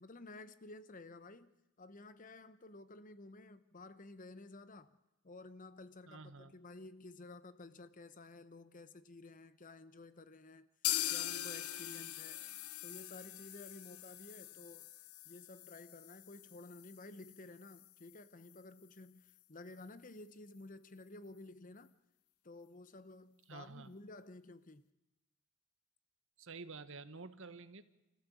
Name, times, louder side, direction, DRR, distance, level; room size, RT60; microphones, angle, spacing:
voice 1, 0.0-5.0 5.2-10.7 11.1-12.4 12.8-14.9 15.2-21.9 22.4-24.9, left 2 dB, 35° left, 0.9 m, -53 dB
voice 2, 6.1-6.5 23.5-23.9 26.4-27.8, right 4 dB, 60° right, 1.3 m, -50 dB
sound 1, 10.8-18.6 18.9-19.0 19.3-19.4 19.8-19.9, left 13 dB, 80° left, 0.9 m, -42 dB
29.0 x 15.0 x 8.5 m
head